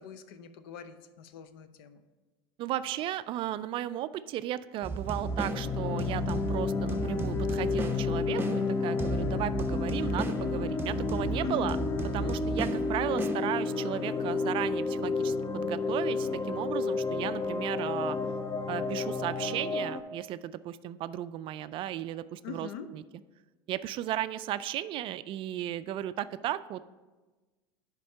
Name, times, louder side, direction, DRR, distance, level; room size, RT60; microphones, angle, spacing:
voice 1, 0.0-2.0 11.4-11.8 22.4-22.9, left 7 dB, 65° left, 11 dB, 0.7 m, -43 dB
voice 2, 2.6-11.8 12.1-18.2 18.7-23.0 23.7-26.8, right 12 dB, 45° right, 14 dB, 0.3 m, -35 dB
sound 1, 4.8-13.9, right 2 dB, 15° right, 0.8 m, -35 dB
sound 2, 5.0-20.0, left 4 dB, 25° left, 0.7 m, -31 dB
10.5 x 3.7 x 5.5 m, 1.2 s
hypercardioid pair, 85°, 13 cm